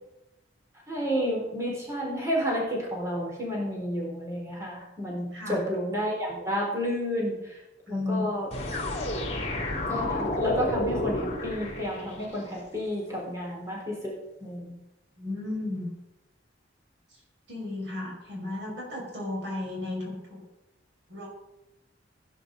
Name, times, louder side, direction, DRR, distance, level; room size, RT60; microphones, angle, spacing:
voice 1, 0.9-7.6 7.9-8.5 9.9-14.1 14.4-14.8, equal, 15° right, -3 dB, 4.2 m, -31 dB
voice 2, 5.2-5.6 7.9-8.3 15.2-15.9 17.1-17.2 17.5-20.4 21.1-21.3, left 2 dB, 75° right, -1 dB, 5.6 m, -34 dB
sound 1, 8.5-12.4, left 1 dB, 35° left, 3.4 m, -31 dB
16.0 x 9.9 x 5.3 m, 0.95 s
head